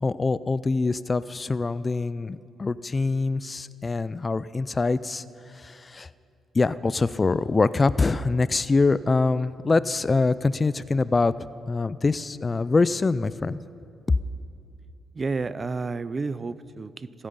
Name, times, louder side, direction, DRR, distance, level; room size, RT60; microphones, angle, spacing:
voice 1, 0.0-5.2 5.5-6.1 6.5-11.3 11.7-13.6, left 3 dB, 25° left, 17 dB, 0.3 m, -24 dB
voice 2, 15.2-17.3, right 4 dB, 30° right, 16 dB, 0.5 m, -31 dB
26.0 x 8.8 x 5.5 m, 2.5 s
cardioid pair, 90°, 0 cm